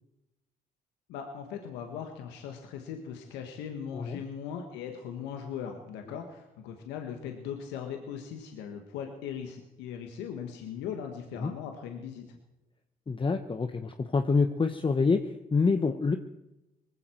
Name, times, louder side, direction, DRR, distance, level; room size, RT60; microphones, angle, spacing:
voice 1, 1.1-12.4, left 8 dB, 85° left, 4 dB, 1.6 m, -39 dB
voice 2, 13.1-16.2, left 4 dB, 30° left, 8 dB, 1.1 m, -27 dB
20.0 x 15.5 x 4.6 m, 0.96 s
supercardioid pair, 60°, 18 cm